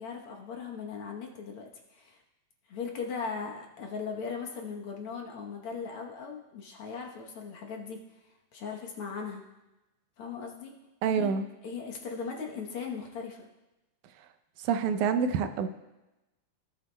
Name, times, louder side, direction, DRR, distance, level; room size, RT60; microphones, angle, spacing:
voice 1, 0.0-2.2 2.7-8.0 8.5-9.4 10.2-10.7 11.1-11.3 11.6-13.5, left 5 dB, 60° left, 0 dB, 1.6 m, -38 dB
voice 2, 11.0-11.4 14.6-15.7, right 6 dB, 90° right, 9 dB, 2.1 m, -27 dB
17.0 x 8.1 x 2.2 m, 0.98 s
omnidirectional pair, 3.4 m